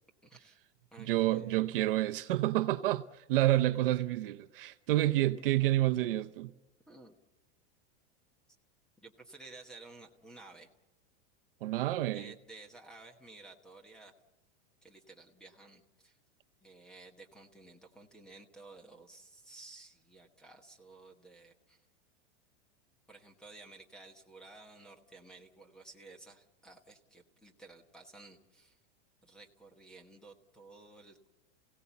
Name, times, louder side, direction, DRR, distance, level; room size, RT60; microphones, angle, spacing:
voice 1, 0.2-0.6 0.9-1.5 6.9-7.1 9.0-10.7 12.1-14.1 14.8-16.2 16.6-21.8 23.1-28.8 29.2-31.3, right 3 dB, ahead, 1.1 m, -54 dB
voice 2, 1.0-3.0 3.3-6.5 11.6-12.3, right 15 dB, 50° right, 0.8 m, -29 dB
29.0 x 17.0 x 7.1 m
supercardioid pair, 175°, 35 cm